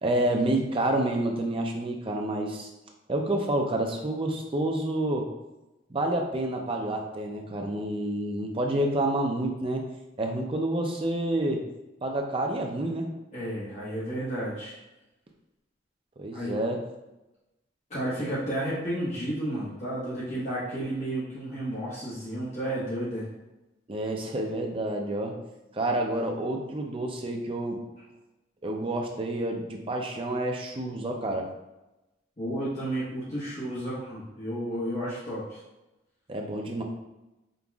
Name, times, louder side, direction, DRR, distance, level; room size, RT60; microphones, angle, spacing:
voice 1, 0.0-2.7 3.1-5.3 5.9-9.8 10.2-11.6 12.0-13.1 16.2-16.8 23.9-25.4 25.7-27.8 28.6-31.5 36.3-36.8, right 1 dB, 30° right, 2 dB, 0.5 m, -28 dB
voice 2, 13.3-14.8 16.3-16.6 17.9-23.3 32.4-35.6, right 1 dB, 40° left, -9 dB, 1.2 m, -32 dB
5.2 x 2.9 x 2.4 m, 0.98 s
head